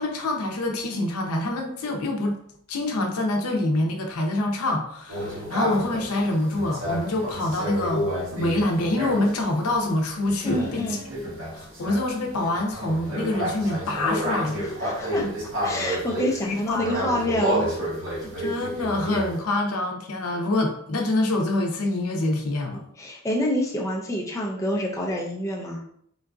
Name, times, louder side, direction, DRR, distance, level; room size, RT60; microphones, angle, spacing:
voice 1, 0.0-2.4 2.7-8.1 8.3-11.0 11.5-14.7 15.2-15.3 16.4-17.1 18.1-22.8, left 1 dB, 85° left, 2 dB, 0.6 m, -26 dB
sound 1, 5.1-9.4 10.2-19.4, equal, 65° right, 0.9 m, -30 dB
voice 2, 10.4-11.0 14.8-15.3 15.6-17.7 23.0-25.8, left 1 dB, 15° left, -2 dB, 0.3 m, -27 dB
3.8 x 2.5 x 2.3 m, 0.66 s
head